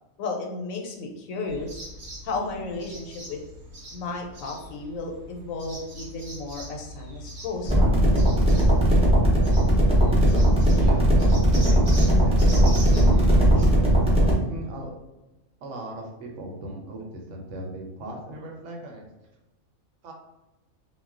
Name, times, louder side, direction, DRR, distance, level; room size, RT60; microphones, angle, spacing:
voice 1, 0.2-1.8 2.2-3.4 3.9-8.1, left 3 dB, 85° left, 1 dB, 1.0 m, -33 dB
sound 1, 1.5-13.7, right 1 dB, 45° right, 0.8 m, -41 dB
sound 2, 7.6-14.3, right 1 dB, 5° right, 0.4 m, -18 dB
voice 2, 10.7-11.1 11.7-14.9 15.6-19.1 20.0-20.1, right 1 dB, 70° right, 0 dB, 0.9 m, -38 dB
2.3 x 2.1 x 3.6 m, 1.0 s
omnidirectional pair, 1.4 m